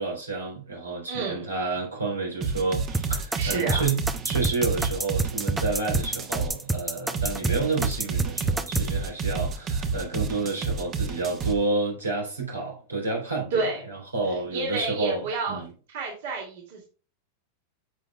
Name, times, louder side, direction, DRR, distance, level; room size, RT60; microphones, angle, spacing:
voice 1, 0.0-4.0 4.2-15.7, right 3 dB, 80° right, 3.7 m, -30 dB
voice 2, 1.1-1.4 3.3-3.8 13.5-13.8 14.5-15.6 15.9-16.9, right 3 dB, 55° right, 2.6 m, -29 dB
sound 1, 2.4-6.5 7.1-11.6, right 5 dB, 30° right, 1.3 m, -29 dB
sound 2, 2.9-8.9, right 2 dB, 10° right, 0.7 m, -28 dB
10.5 x 7.2 x 2.4 m
figure-of-eight pair, 90°, 0 cm